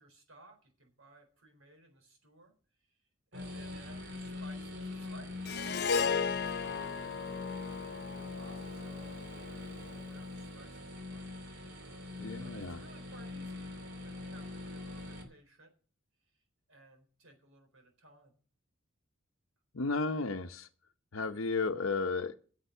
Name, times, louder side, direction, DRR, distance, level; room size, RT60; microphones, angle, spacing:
voice 1, 0.0-2.5 2.8-5.5 5.8-7.2 7.7-11.3 11.8-15.7 16.2-16.4 16.7-18.3, right 2 dB, 80° right, 5 dB, 4.0 m, -59 dB
sound 1, 3.3-15.2, left 2 dB, 60° right, 2.7 m, -43 dB
Harp, 5.4-9.9, left 6 dB, 50° left, 0.5 m, -35 dB
voice 2, 12.2-12.8 19.7-20.7 21.1-22.4, left 4 dB, 75° left, 7 dB, 0.8 m, -33 dB
9.9 x 7.5 x 9.3 m, 0.42 s
head